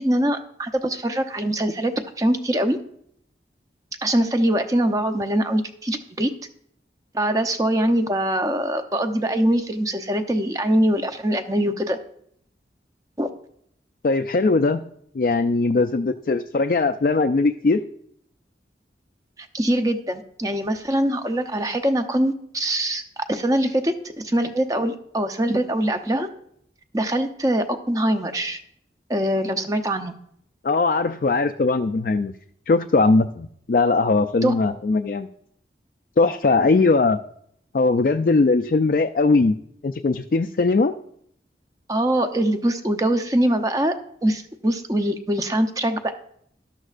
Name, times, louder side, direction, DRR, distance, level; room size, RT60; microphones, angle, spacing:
voice 1, 0.0-2.8 4.0-6.3 7.1-12.0 13.2-13.3 19.4-26.3 26.9-28.6 29.1-30.1 34.4-34.5 41.9-44.0 44.2-46.1, right 1 dB, 20° right, 6 dB, 0.7 m, -23 dB
voice 2, 14.0-14.8 15.1-17.8 30.6-32.3 32.7-35.3 36.2-37.2 37.7-39.6 39.8-40.9, left 3 dB, 50° left, 6 dB, 0.4 m, -20 dB
12.5 x 12.0 x 2.5 m, 0.68 s
head